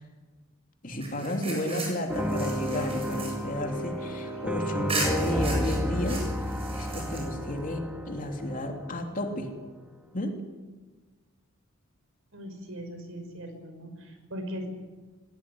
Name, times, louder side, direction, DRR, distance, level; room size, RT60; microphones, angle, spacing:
voice 1, 0.8-6.3 6.7-9.5 10.1-10.4, left 1 dB, 40° left, 3 dB, 3.0 m, -32 dB
sound 1, 1.0-4.4 4.9-7.6, right 3 dB, 25° right, 7.5 m, -37 dB
sound 2, 2.1-9.2, equal, 5° right, 1.7 m, -31 dB
voice 2, 12.3-14.7, equal, 70° right, 5 dB, 5.5 m, -39 dB
21.5 x 17.5 x 9.8 m, 1.3 s
head